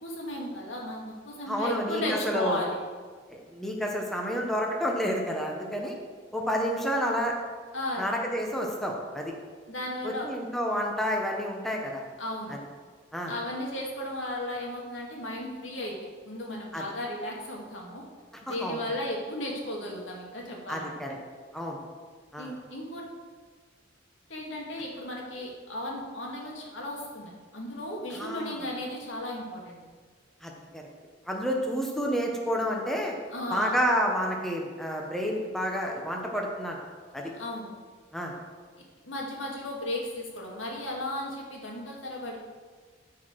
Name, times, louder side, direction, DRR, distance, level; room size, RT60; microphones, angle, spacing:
voice 1, 0.0-2.8 7.7-8.1 9.7-10.3 12.2-12.6 13.3-16.0 16.2-18.0 18.4-21.0 22.4-23.1 24.3-29.8 33.3-33.8 37.4-37.7 39.0-42.4, left 1 dB, 85° left, -2 dB, 2.0 m, -35 dB
voice 2, 1.5-2.6 3.3-5.9 6.3-7.4 8.0-9.3 10.0-12.0 12.5-12.6 13.1-13.3 16.7-16.8 18.5-18.8 20.7-21.1 21.5-21.8 22.3-22.5 28.1-28.6 30.4-30.9 31.3-33.2 33.5-36.8 37.1-37.3 38.1-38.3, equal, ahead, 0 dB, 1.0 m, -30 dB
12.5 x 4.8 x 4.6 m, 1.5 s
head